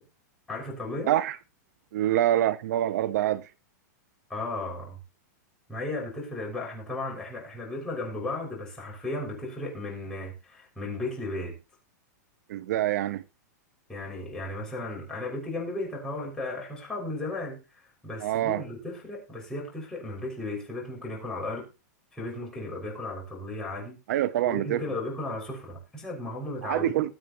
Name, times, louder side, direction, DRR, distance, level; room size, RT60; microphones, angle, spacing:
voice 1, 0.5-1.1 4.3-5.0 5.7-11.5 13.9-21.7 22.1-24.0 24.4-27.1, left 2 dB, 5° left, 6.0 m, -35 dB
voice 2, 1.1-1.4 1.9-3.4 12.5-13.2 18.2-18.6 24.1-24.8 26.6-27.1, right 12 dB, 65° right, 0.7 m, -25 dB
20.5 x 7.7 x 3.0 m
supercardioid pair, 150°, 10 cm